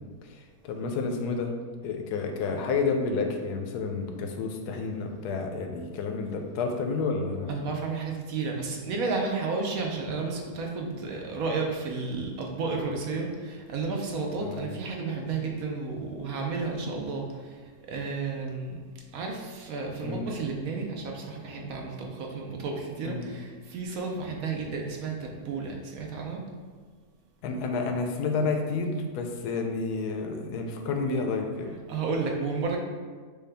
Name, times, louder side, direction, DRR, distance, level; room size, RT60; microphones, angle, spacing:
voice 1, 0.2-1.5 1.8-7.6 14.4-14.7 20.0-20.3 23.1-23.2 27.4-31.7, left 4 dB, 85° left, 4 dB, 1.1 m, -30 dB
voice 2, 7.5-17.6 17.9-18.8 19.1-26.4 31.9-32.8, right 4 dB, 70° right, 1 dB, 1.1 m, -32 dB
6.5 x 2.3 x 3.4 m, 1.5 s
omnidirectional pair, 1.7 m